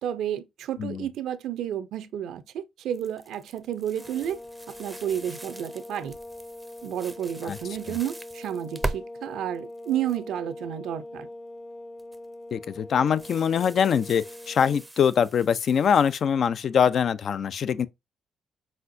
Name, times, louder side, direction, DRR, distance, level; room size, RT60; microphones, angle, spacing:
voice 1, 0.0-4.4 4.7-6.1 6.8-11.3, right 10 dB, 80° right, 0.5 m, -31 dB
sound 1, 2.9-9.0 9.5-10.2 12.0-12.3 13.1-16.3, right 2 dB, 10° right, 0.5 m, -40 dB
sound 2, 3.9-14.9, left 1 dB, 35° left, 0.9 m, -43 dB
voice 2, 12.5-17.9, left 7 dB, 55° left, 0.4 m, -23 dB
4.3 x 4.2 x 2.6 m
cardioid pair, 90°, 0 cm